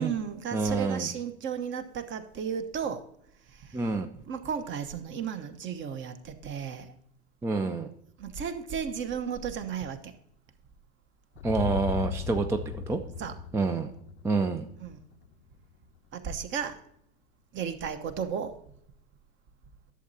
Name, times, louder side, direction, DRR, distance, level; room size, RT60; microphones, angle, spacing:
voice 1, 0.0-3.0 3.5-3.8 4.3-6.9 8.2-10.1 13.2-13.4 14.8-15.0 16.1-16.8 17.5-18.5, right 7 dB, 35° right, 10 dB, 1.0 m, -34 dB
voice 2, 0.5-1.1 3.7-4.1 7.4-7.9 11.4-13.0 13.5-13.9 14.2-14.7, right 4 dB, 10° right, 7 dB, 0.4 m, -28 dB
sound 1, 11.4-15.4, left 7 dB, 75° left, 0.7 m, -37 dB
11.5 x 7.3 x 2.7 m, 0.72 s
hypercardioid pair, 90°, 33 cm